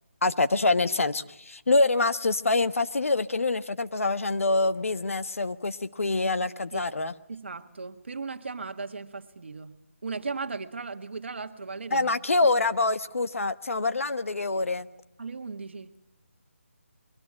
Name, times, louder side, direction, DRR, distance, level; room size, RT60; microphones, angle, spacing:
voice 1, 0.2-7.1 11.9-14.9, left 3 dB, 75° left, 12 dB, 1.2 m, -25 dB
voice 2, 7.3-9.8 10.0-12.1 12.4-12.5 15.2-15.9, right 4 dB, 55° right, 7 dB, 1.7 m, -37 dB
23.0 x 20.0 x 8.7 m, 0.89 s
hypercardioid pair, 175°, 7 cm